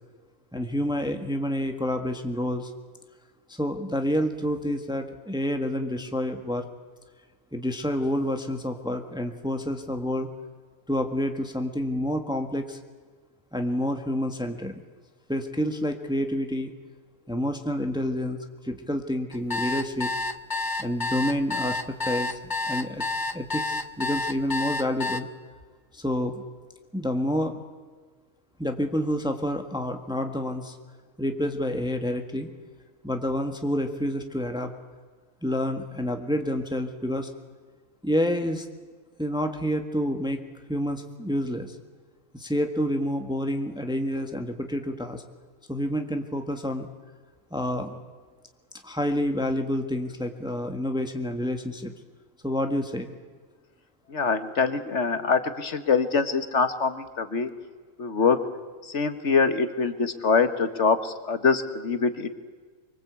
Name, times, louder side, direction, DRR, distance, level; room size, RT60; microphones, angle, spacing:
voice 1, 0.5-2.7 3.5-6.7 7.5-10.3 10.9-12.8 13.5-14.8 15.3-16.7 17.3-18.4 18.6-20.1 20.8-23.0 23.3-25.3 25.9-26.4 26.9-27.6 28.6-30.7 31.2-32.5 33.0-34.7 35.4-37.3 38.0-38.6 39.2-40.4 40.7-41.7 42.3-45.2 45.7-46.9 47.5-48.0 48.8-51.9 52.4-53.1, equal, 5° right, 5 dB, 1.6 m, -28 dB
sound 1, 19.3-25.2, left 3 dB, 20° left, 0.8 m, -29 dB
voice 2, 54.1-57.5 58.0-58.4 58.8-62.3, left 5 dB, 60° left, 9 dB, 1.7 m, -24 dB
24.5 x 23.5 x 8.3 m, 1.5 s
omnidirectional pair, 1.4 m